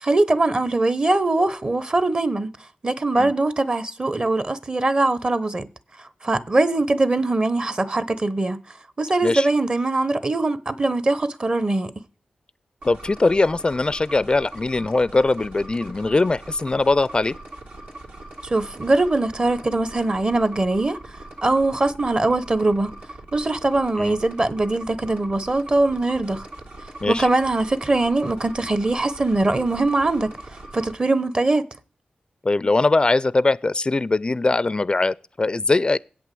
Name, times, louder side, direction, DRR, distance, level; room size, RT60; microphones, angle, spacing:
voice 1, 0.0-2.5 2.8-5.7 6.2-8.6 9.0-11.9 18.4-21.0 21.4-22.9 23.3-26.5 27.1-31.7, right 2 dB, 35° right, 0.9 m, -22 dB
voice 2, 12.8-17.3 24.0-24.2 27.0-27.3 32.4-36.0, left 3 dB, 30° left, 0.4 m, -21 dB
sound 1, 12.8-30.9, right 2 dB, 80° right, 2.6 m, -41 dB
8.4 x 6.1 x 7.6 m
cardioid pair, 65°, 3 cm